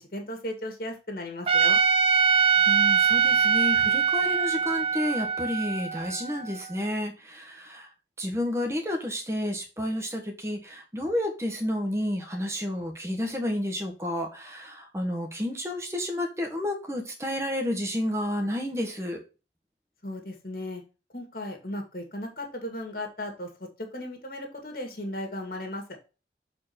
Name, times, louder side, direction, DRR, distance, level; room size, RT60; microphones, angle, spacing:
voice 1, 0.0-1.8 20.0-20.8 21.1-23.5 23.8-25.8, left 1 dB, 55° left, 3 dB, 2.2 m, -36 dB
Trumpet, 1.5-6.6, right 6 dB, 30° right, 0.6 m, -23 dB
voice 2, 2.7-7.9 8.2-19.2, left 1 dB, 15° right, 2 dB, 1.5 m, -31 dB
7.2 x 4.7 x 4.3 m, 0.32 s
head